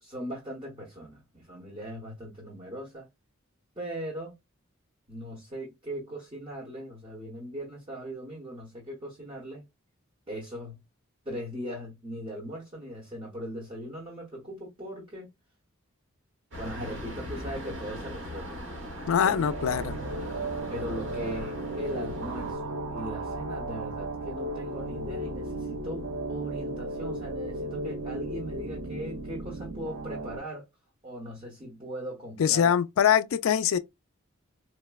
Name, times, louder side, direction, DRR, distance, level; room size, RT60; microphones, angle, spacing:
voice 1, 0.0-3.1 3.8-4.3 5.1-9.6 10.3-10.8 11.2-15.3 16.6-18.6 19.2-19.5 20.7-30.6 31.0-32.7, equal, 25° right, 1.0 m, -39 dB
sound 1, 16.5-22.5, equal, 60° right, 1.1 m, -39 dB
sound 2, 18.8-30.4, right 1 dB, 80° right, 0.6 m, -35 dB
voice 2, 19.1-20.0 32.4-33.8, left 8 dB, 75° left, 0.4 m, -23 dB
4.4 x 2.1 x 2.2 m
head